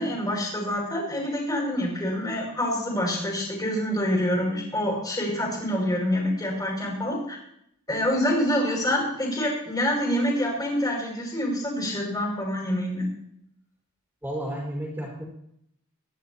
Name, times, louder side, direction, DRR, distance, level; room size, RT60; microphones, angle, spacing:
voice 1, 0.0-7.4 7.9-13.1, equal, 20° left, -1 dB, 6.4 m, -26 dB
voice 2, 14.2-15.2, right 1 dB, 10° right, -4 dB, 4.7 m, -32 dB
27.0 x 11.5 x 3.0 m, 0.73 s
head